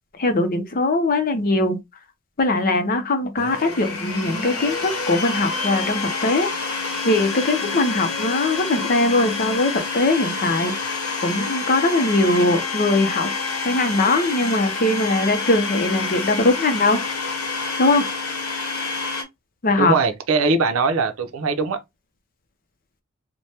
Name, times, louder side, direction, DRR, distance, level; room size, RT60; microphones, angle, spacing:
voice 1, 0.2-1.8 2.4-6.5 7.0-10.7 11.2-13.3 13.6-17.0 17.8-18.0 19.6-19.9, left 2 dB, 45° left, 0.6 m, -21 dB
Domestic sounds home sounds, 3.4-19.2, left 4 dB, 85° left, 0.8 m, -28 dB
voice 2, 19.8-21.8, right 4 dB, 70° right, 0.6 m, -21 dB
3.2 x 2.1 x 2.8 m
head